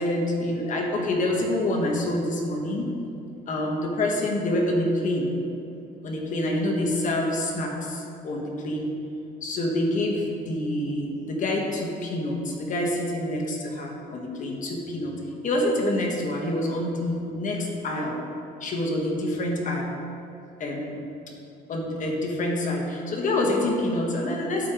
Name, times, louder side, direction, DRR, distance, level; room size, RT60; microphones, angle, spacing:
voice 1, 0.0-2.9 3.5-5.3 6.0-8.9 9.4-15.1 15.4-18.2 18.6-19.9 20.6-21.0 21.7-24.7, left 1 dB, 50° left, 0 dB, 1.3 m, -27 dB
12.5 x 5.0 x 3.1 m, 2.8 s
cardioid pair, 110°, 17 cm